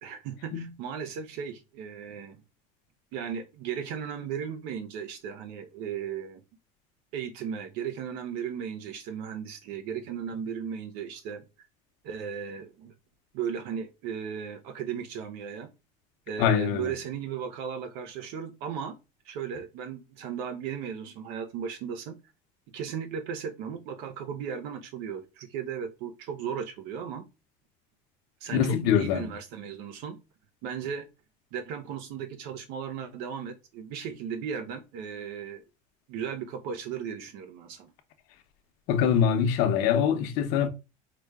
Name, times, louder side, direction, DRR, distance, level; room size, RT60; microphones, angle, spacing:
voice 1, 0.0-2.4 3.1-6.4 7.1-11.4 12.0-12.9 13.3-15.7 16.3-18.9 19.2-22.1 22.7-27.3 28.4-30.2 30.6-31.1 31.5-35.6 36.1-37.9, right 7 dB, 70° right, 0.6 m, -36 dB
voice 2, 16.4-16.9 28.5-29.3 38.9-40.7, left 8 dB, 65° left, 0.8 m, -24 dB
4.9 x 2.2 x 3.5 m
cardioid pair, 150°, 17 cm